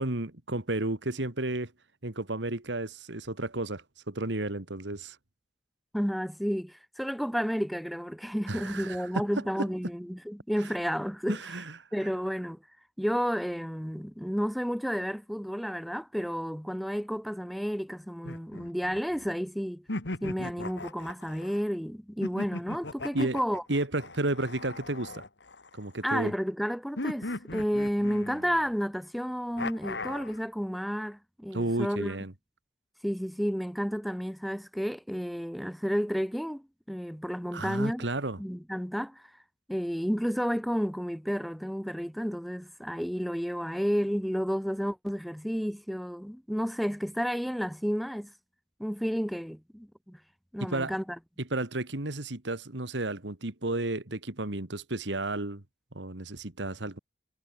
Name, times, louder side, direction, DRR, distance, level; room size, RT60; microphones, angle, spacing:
voice 1, 0.0-1.7 2.0-5.2 8.5-9.1 11.3-11.8 23.1-23.4 23.7-25.2 25.7-26.3 31.5-32.3 37.5-38.4 50.6-50.9 51.4-55.6 55.9-57.0, right 2 dB, 85° right, 2.2 m, -32 dB
voice 2, 5.9-11.4 11.9-12.6 13.0-19.8 20.2-23.6 26.0-32.2 33.0-38.1 38.4-39.2 39.7-48.3 48.8-50.2 50.5-51.0, equal, ahead, 6.1 m, -31 dB
sound 1, 18.2-19.3 19.9-21.6 22.2-26.0 27.0-28.7 29.6-30.4, left 2 dB, 75° left, 2.4 m, -38 dB
head